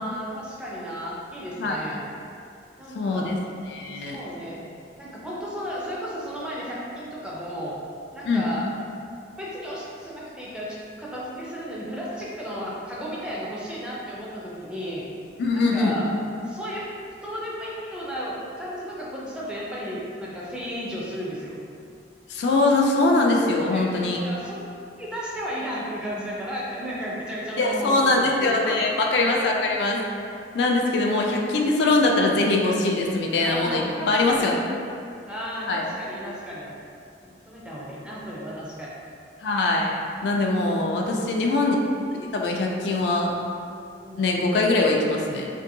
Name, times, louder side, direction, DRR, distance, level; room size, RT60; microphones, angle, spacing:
voice 1, 0.0-2.0 2.8-3.4 3.9-4.6 5.0-7.8 8.1-8.7 9.4-15.0 15.5-16.1 16.4-16.9 17.2-21.7 23.7-23.9 24.2-24.6 25.0-28.9 33.4-34.5 35.3-36.7 37.2-38.9 40.8-41.5 42.8-43.0 44.0-44.2, equal, 5° right, -6 dB, 0.4 m, -34 dB
voice 2, 3.0-3.4 3.7-4.2 8.3-8.5 15.4-16.0 22.3-24.2 27.6-30.0 30.5-34.6 35.7-35.8 39.4-39.9 40.2-41.8 42.3-43.3 44.2-45.5, left 2 dB, 70° left, 0 dB, 0.3 m, -22 dB
2.6 x 2.5 x 2.6 m, 2.4 s
head